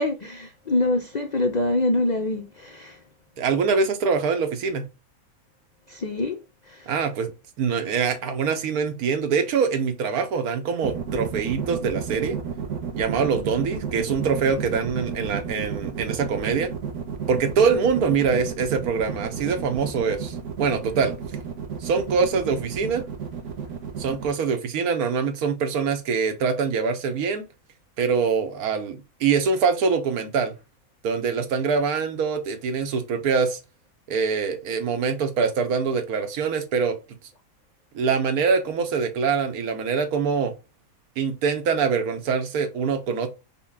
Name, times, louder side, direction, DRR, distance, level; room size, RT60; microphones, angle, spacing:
voice 1, 0.0-3.0 5.9-6.4 6.7-6.9, left 2 dB, 85° left, 0.3 m, -25 dB
voice 2, 3.4-4.9 6.9-7.3 7.6-12.4 12.9-16.7 17.3-21.1 21.8-23.1 24.0-27.4 28.0-30.5 31.0-33.6 34.1-37.0 37.9-40.5 41.2-43.3, right 5 dB, 90° right, 1.3 m, -24 dB
sound 1, 10.8-24.3, right 7 dB, 60° right, 1.1 m, -31 dB
5.5 x 2.2 x 3.6 m
omnidirectional pair, 1.5 m